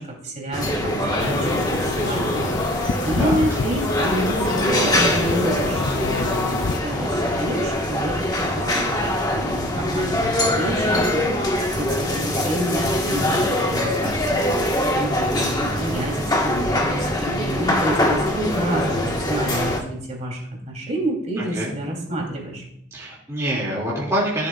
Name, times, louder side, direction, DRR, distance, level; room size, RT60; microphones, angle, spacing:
voice 1, 0.0-22.6, right 1 dB, 40° right, -1 dB, 3.3 m, -29 dB
sound 1, 0.5-19.8, left 1 dB, 20° left, 1.5 m, -23 dB
sound 2, 1.2-6.8, left 4 dB, 90° left, 0.5 m, -28 dB
voice 2, 3.1-3.6 21.4-21.8 22.9-24.5, right 1 dB, 15° right, -7 dB, 2.4 m, -26 dB
15.0 x 7.5 x 2.4 m, 0.76 s
head